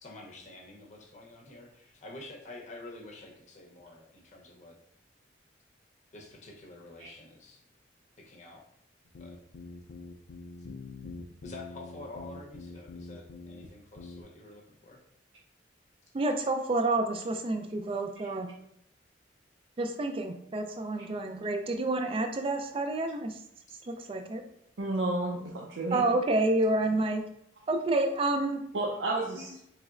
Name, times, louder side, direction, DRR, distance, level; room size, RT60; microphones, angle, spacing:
voice 1, 0.0-4.8 6.1-7.6 8.2-8.6 9.2-9.4 11.4-15.0, left 2 dB, 40° left, -1 dB, 0.7 m, -48 dB
sound 1, 9.1-13.7 14.0-14.2, left 3 dB, 90° left, 0.4 m, -44 dB
voice 2, 16.1-18.5 19.8-23.4 23.9-24.4 25.9-27.2 27.7-28.6, right 2 dB, 30° right, 6 dB, 0.3 m, -29 dB
voice 3, 24.8-26.0 28.7-29.6, right 2 dB, 90° right, -4 dB, 0.6 m, -31 dB
4.0 x 3.1 x 2.4 m, 0.75 s
head